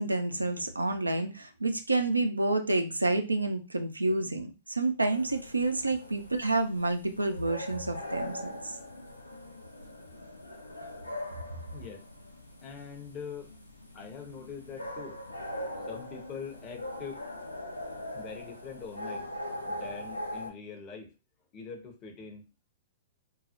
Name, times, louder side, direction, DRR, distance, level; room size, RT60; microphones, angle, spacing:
voice 1, 0.0-8.8, right 2 dB, 85° right, 0.4 m, -29 dB
sound 1, 5.1-20.5, left 1 dB, 85° left, 0.5 m, -41 dB
voice 2, 11.7-12.0 12.6-13.5 13.9-15.2 15.7-17.2 18.1-19.3 19.5-21.1 21.5-22.7, left 6 dB, 30° left, 0.7 m, -43 dB
2.3 x 2.0 x 2.7 m
figure-of-eight pair, 105°, 0 cm